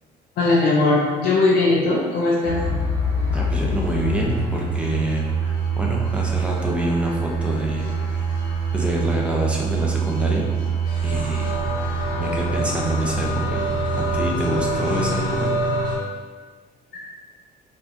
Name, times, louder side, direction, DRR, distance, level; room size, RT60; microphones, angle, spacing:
voice 1, 0.4-2.6 16.9-17.0, left 2 dB, 70° left, -4 dB, 0.5 m, -19 dB
sound 1, 2.4-16.0, right 2 dB, 25° left, 1.1 m, -24 dB
voice 2, 3.3-8.2 8.7-10.5 11.0-15.5, right 1 dB, 5° right, -2 dB, 0.6 m, -27 dB
4.0 x 2.4 x 2.6 m, 1.5 s
cardioid pair, 110°, 17 cm